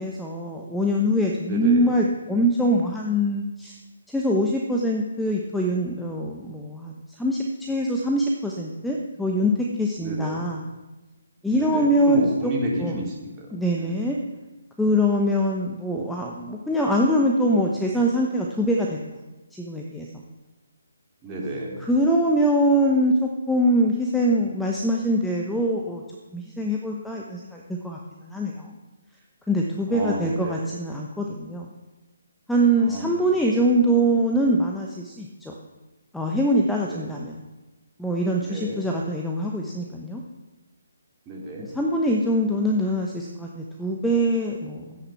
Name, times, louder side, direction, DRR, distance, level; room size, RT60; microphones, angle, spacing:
voice 1, 0.0-3.7 4.1-6.9 7.2-10.6 11.4-12.5 12.8-13.1 13.5-14.2 14.8-19.0 19.5-20.2 21.8-26.0 26.3-28.0 28.3-28.7 29.5-31.7 32.5-35.5 36.1-37.4 38.0-40.2 41.7-45.0, equal, 5° left, -1 dB, 1.0 m, -23 dB
voice 2, 1.4-1.9 10.0-10.4 11.6-14.0 21.2-21.8 29.9-30.6 32.8-33.1 33.5-33.6 36.9-37.2 38.4-38.8 41.2-41.7, right 1 dB, 20° right, -3 dB, 3.4 m, -31 dB
13.0 x 10.0 x 5.9 m, 1.1 s
figure-of-eight pair, 145°, 0 cm